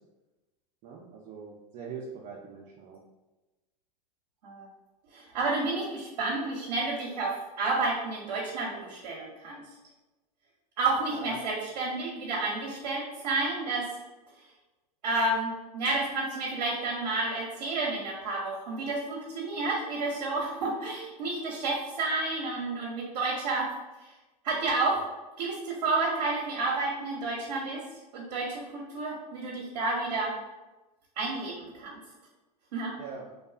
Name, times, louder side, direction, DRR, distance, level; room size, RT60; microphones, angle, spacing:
voice 1, 0.8-3.0 11.1-11.4 33.0-33.3, right 5 dB, 35° right, -3 dB, 0.4 m, -42 dB
voice 2, 5.1-9.6 10.8-13.9 15.0-23.7 24.4-25.1 25.4-27.9 28.1-30.3 31.2-32.0 32.7-33.0, right 3 dB, 80° right, -3 dB, 0.6 m, -30 dB
2.7 x 2.3 x 2.3 m, 1.1 s
hypercardioid pair, 110°, 21 cm